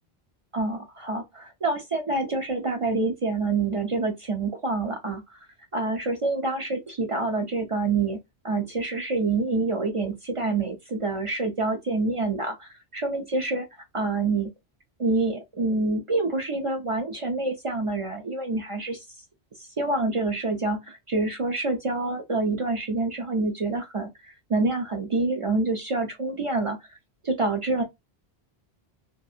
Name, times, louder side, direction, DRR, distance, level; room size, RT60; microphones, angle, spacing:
voice 1, 0.5-5.4 5.7-8.2 8.4-13.7 13.9-14.5 15.0-19.1 19.6-26.8 27.2-27.8, right 3 dB, 50° right, 0.4 m, -27 dB
2.7 x 2.5 x 2.3 m
omnidirectional pair, 1.1 m